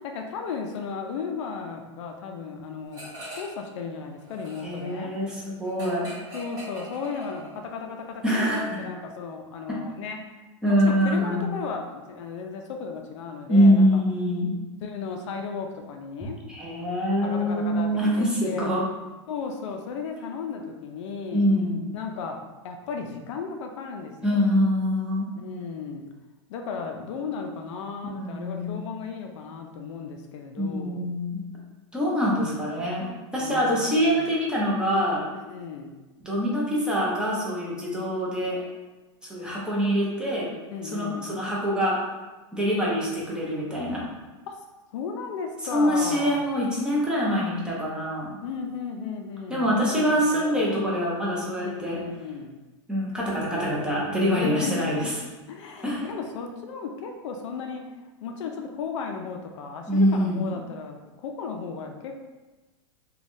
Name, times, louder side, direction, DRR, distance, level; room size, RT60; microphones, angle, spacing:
voice 1, 0.0-3.0 3.4-5.1 6.3-10.4 10.6-14.0 14.8-16.4 17.2-17.9 18.2-18.7 19.3-21.4 21.9-22.4 22.6-24.5 25.4-26.0 26.5-31.1 33.4-34.2 35.3-36.0 40.7-41.3 44.5-44.6 44.9-46.4 48.4-50.8 51.6-52.5 54.4-55.1 55.5-57.8 58.2-62.1, left 5 dB, 70° left, 3 dB, 0.4 m, -35 dB
sound 1, 2.9-3.7 4.0-7.8, right 1 dB, 20° right, 1.3 m, -42 dB
voice 2, 4.6-6.1 8.2-8.8 10.6-11.5 13.5-14.5 16.5-18.8 21.3-21.8 24.2-25.3 28.0-28.8 30.6-31.4 31.9-35.2 36.2-38.6 39.2-40.5 40.9-42.0 42.5-44.0 45.7-48.4 49.5-52.0 52.9-55.1 55.8-56.0 59.9-60.6, equal, 5° right, -6 dB, 0.6 m, -24 dB
3.2 x 2.3 x 2.6 m, 1.2 s
supercardioid pair, 135°, 16 cm